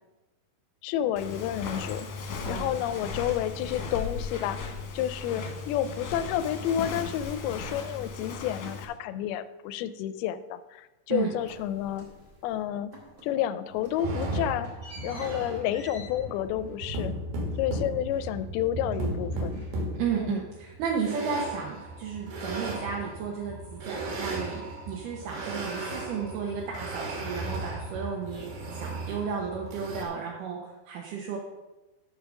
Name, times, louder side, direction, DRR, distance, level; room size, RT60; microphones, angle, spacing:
voice 1, 0.8-12.1 12.4-12.9 13.2-14.7 15.0-17.1 17.6-19.6 20.2-20.4, left 11 dB, 90° left, 13 dB, 2.5 m, -30 dB
Walk footsteps, 1.2-8.8, left 4 dB, 60° left, 1.9 m, -37 dB
voice 2, 2.5-2.8 11.1-11.3 20.0-28.5 28.8-31.4, right 6 dB, 70° right, -1 dB, 2.2 m, -33 dB
sound 1, 11.4-12.6 12.9-13.4 13.7-18.6 18.9-20.2, equal, 30° right, 2.0 m, -50 dB
sound 2, 14.0-30.0, right 2 dB, 85° right, 3.7 m, -35 dB
7.0 x 6.4 x 6.2 m, 1.1 s
omnidirectional pair, 4.4 m